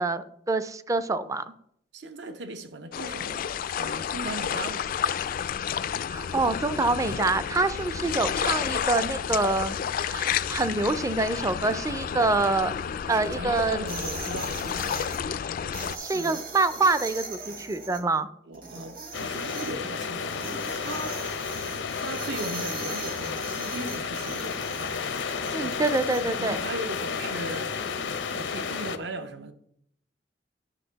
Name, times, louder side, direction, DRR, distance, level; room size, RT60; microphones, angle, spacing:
voice 1, 0.0-1.5 6.1-12.7 13.1-13.8 16.0-18.3 25.5-26.6, right 3 dB, 20° right, 0.4 m, -26 dB
voice 2, 1.9-4.9 8.1-8.3 12.2-12.3 13.1-15.4 16.1-16.4 18.5-21.2 21.9-24.9 25.6-27.7 28.3-29.5, right 2 dB, 70° right, 0.8 m, -38 dB
sound 1, 2.9-16.0, left 8 dB, 50° left, 0.3 m, -31 dB
sound 2, 13.9-15.2 15.7-18.0 18.5-19.7 20.3-26.2, right 4 dB, 55° right, 1.8 m, -40 dB
sound 3, 19.1-29.0, left 5 dB, 90° left, 0.7 m, -32 dB
9.8 x 6.2 x 4.0 m
head